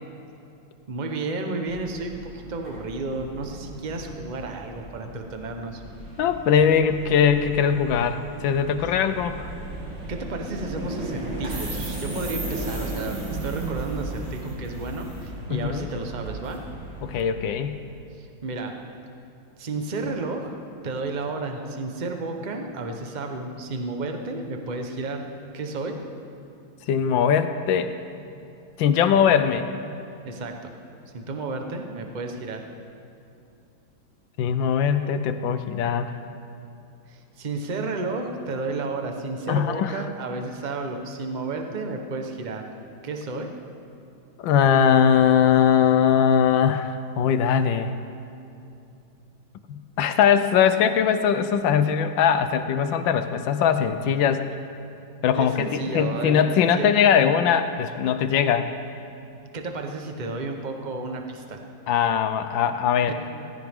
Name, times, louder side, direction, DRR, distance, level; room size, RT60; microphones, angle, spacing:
voice 1, 0.9-5.8 10.1-16.6 18.2-18.7 19.6-20.6 20.8-25.2 25.5-26.0 30.2-30.7 31.1-32.6 37.1-42.6 43.0-43.5 55.3-56.9 59.5-61.6 63.0-63.1, right 3 dB, 35° right, 4 dB, 0.7 m, -32 dB
sound 1, 1.7-17.3, right 2 dB, 60° right, 3.4 m, -35 dB
voice 2, 6.2-9.5 15.5-15.9 17.0-17.8 26.9-27.9 28.8-29.7 34.4-36.1 39.5-40.0 44.4-47.9 49.7-54.4 55.2-58.7 61.9-63.1, left 8 dB, 70° left, 10 dB, 1.3 m, -21 dB
17.5 x 15.5 x 3.6 m, 2.7 s
omnidirectional pair, 2.3 m